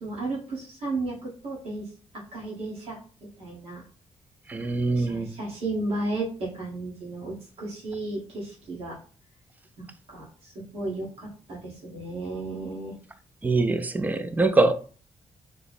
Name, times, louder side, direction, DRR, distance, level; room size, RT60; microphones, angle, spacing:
voice 1, 0.0-3.0 3.4-3.8 4.9-9.0 9.8-13.0, right 2 dB, 70° right, 1.4 m, -34 dB
voice 2, 4.5-5.3 13.4-14.7, right 3 dB, 15° right, 0.3 m, -23 dB
3.3 x 2.0 x 4.1 m
wide cardioid pair, 150°, 11 cm